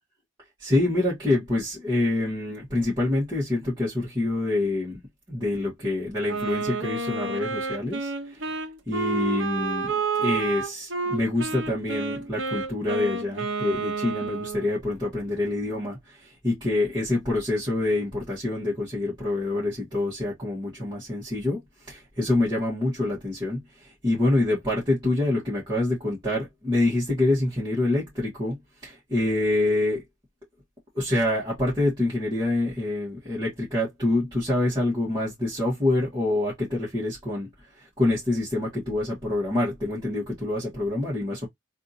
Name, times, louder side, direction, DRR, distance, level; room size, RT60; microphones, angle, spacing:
voice 1, 0.6-5.0 5.3-8.6 8.9-30.0 30.9-41.5, left 2 dB, 20° right, 1.6 m, -26 dB
Wind instrument woodwind instrument, 6.3-14.7, right 4 dB, 70° right, 0.9 m, -30 dB
3.4 x 2.7 x 2.6 m
head